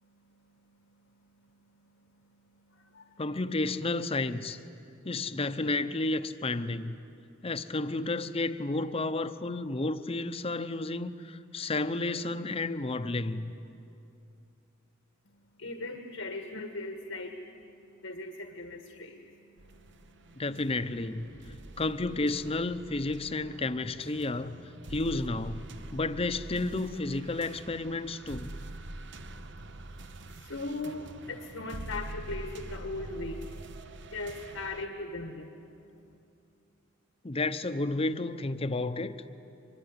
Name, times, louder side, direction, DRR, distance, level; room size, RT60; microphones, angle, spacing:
voice 1, 0.0-3.2 15.2-20.4 21.1-21.6 29.6-36.1, left 2 dB, 80° left, 1.6 m, -41 dB
voice 2, 3.2-4.6 5.0-7.0 7.4-13.5 20.3-21.3 21.8-24.6 24.9-28.6 37.2-39.3, left 2 dB, 30° left, 0.8 m, -31 dB
sound 1, 19.6-34.9, right 2 dB, 65° right, 1.0 m, -45 dB
25.0 x 22.5 x 9.8 m
head